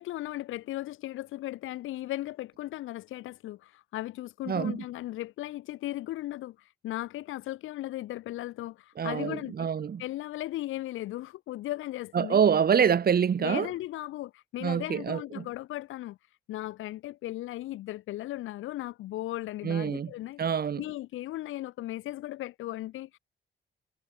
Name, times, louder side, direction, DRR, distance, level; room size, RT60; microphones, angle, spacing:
voice 1, 0.0-9.7 10.0-12.4 13.4-16.2 16.5-23.2, left 15 dB, 90° left, 4.4 m, -37 dB
voice 2, 4.5-4.8 9.0-10.0 12.1-13.7 14.6-15.4 19.6-20.1 20.4-20.8, right 7 dB, 50° right, 4.9 m, -26 dB
cardioid pair, 90°, 20 cm